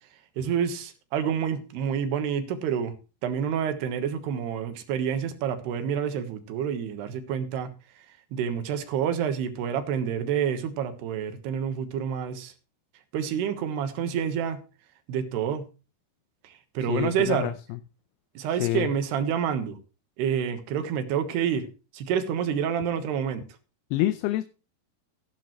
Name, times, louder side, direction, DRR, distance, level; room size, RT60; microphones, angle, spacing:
voice 1, 0.4-2.9 3.2-7.7 8.0-8.1 8.3-12.5 13.1-14.6 15.1-15.7 16.4-17.5 18.3-19.8 20.2-21.7 21.9-23.4, right 8 dB, 80° right, 3.4 m, -28 dB
voice 2, 16.9-17.8 18.6-18.9 23.9-24.4, left 15 dB, 80° left, 2.6 m, -27 dB
14.5 x 12.0 x 3.1 m
omnidirectional pair, 4.7 m